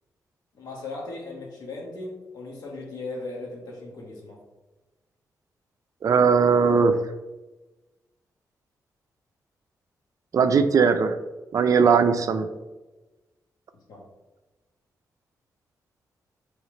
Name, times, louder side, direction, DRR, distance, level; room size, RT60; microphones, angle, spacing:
voice 1, 0.5-4.4 13.9-14.0, left 2 dB, 80° left, -2 dB, 1.1 m, -37 dB
voice 2, 6.0-7.0 10.3-11.2 11.5-12.5, right 5 dB, 60° right, 9 dB, 0.3 m, -19 dB
4.0 x 3.2 x 3.2 m, 1.1 s
cardioid pair, 65°, 7 cm